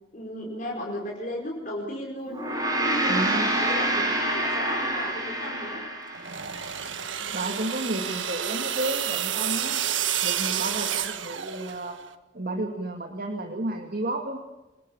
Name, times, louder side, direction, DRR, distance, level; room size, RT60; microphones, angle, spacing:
voice 1, 0.1-5.8, left 1 dB, 45° left, -2 dB, 4.7 m, -35 dB
Gong, 2.3-6.9, right 1 dB, 20° right, 6.2 m, -27 dB
voice 2, 3.1-3.5 7.2-9.8 10.2-12.0 12.3-14.4, right 1 dB, 50° right, 3 dB, 2.5 m, -32 dB
sound 1, 6.1-12.0, right 9 dB, 80° right, 1.6 m, -29 dB
27.0 x 20.5 x 7.0 m, 1.0 s
head